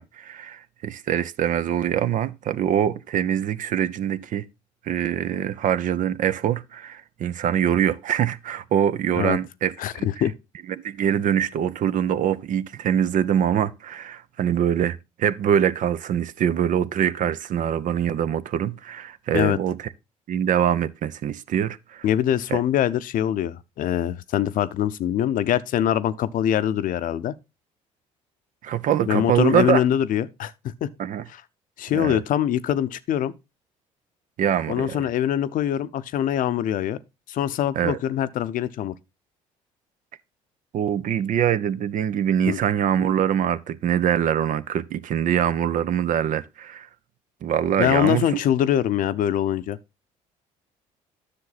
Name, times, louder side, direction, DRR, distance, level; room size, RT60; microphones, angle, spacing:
voice 1, 0.0-4.4 4.8-10.1 10.8-19.9 20.3-22.1 22.5-22.6 28.6-29.8 31.0-31.2 31.9-32.2 34.4-35.1 37.7-38.0 40.7-46.9 47.4-48.4, right 9 dB, 60° right, 0.6 m, -24 dB
voice 2, 9.8-10.3 19.3-19.6 22.0-27.3 29.1-30.5 30.8-30.9 31.8-33.3 34.7-37.0 37.3-38.9 42.5-42.6 47.8-49.8, left 11 dB, 65° left, 0.7 m, -23 dB
9.9 x 6.6 x 4.0 m
hypercardioid pair, 60°, 15 cm